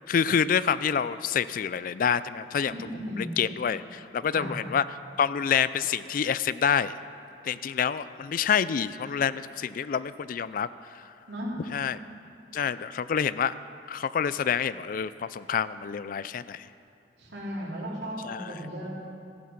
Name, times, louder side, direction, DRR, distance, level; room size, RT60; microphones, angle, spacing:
voice 1, 0.1-2.9 3.1-4.8 5.2-6.9 7.4-11.0 11.7-12.0 12.5-13.6 13.9-16.7 18.2-18.5, left 7 dB, 50° left, 16 dB, 0.3 m, -27 dB
voice 2, 2.7-3.3 4.3-4.5 11.3-11.6 17.2-18.9, equal, 70° right, -5 dB, 3.2 m, -35 dB
14.5 x 9.4 x 5.9 m, 2.4 s
head